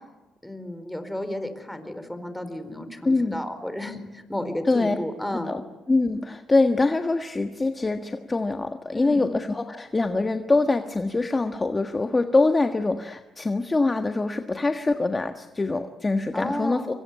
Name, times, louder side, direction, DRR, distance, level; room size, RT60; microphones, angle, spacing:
voice 1, 0.4-5.6 8.9-9.3 16.3-16.9, left 1 dB, 5° left, 9 dB, 4.4 m, -32 dB
voice 2, 3.0-3.4 4.6-4.9 5.5-5.6 5.9-16.9, left 3 dB, 25° left, 7 dB, 1.5 m, -24 dB
26.0 x 24.0 x 9.5 m, 1.1 s
cardioid pair, 90°, 0 cm